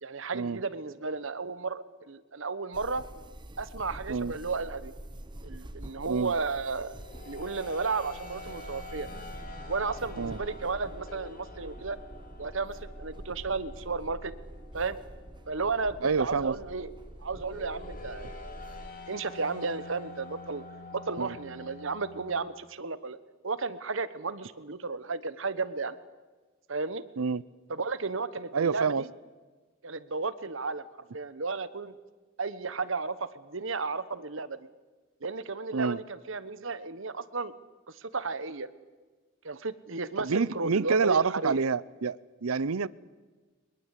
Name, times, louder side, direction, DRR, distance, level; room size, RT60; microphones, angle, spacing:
voice 1, 0.0-3.0 3.6-4.9 5.4-6.9 7.3-9.1 9.7-12.0 12.4-14.3 14.7-15.0 15.5-16.9 17.2-18.3 19.1-20.6 20.9-23.2 23.4-25.9 26.7-27.0 27.7-29.1 29.8-30.9 31.1-31.9 32.4-34.7 35.2-37.5 37.9-38.7 39.4-41.6, right 4 dB, 65° right, 14 dB, 1.1 m, -33 dB
sound 1, 2.7-18.9, right 1 dB, 20° right, 1.1 m, -45 dB
sound 2, 6.5-22.4, left 3 dB, 40° left, 2.7 m, -47 dB
voice 2, 16.0-16.5 21.2-21.3 27.2-27.4 28.5-29.0 35.7-36.0 40.2-42.9, right 5 dB, 90° right, 21 dB, 0.7 m, -27 dB
22.5 x 21.5 x 8.4 m, 1.3 s
head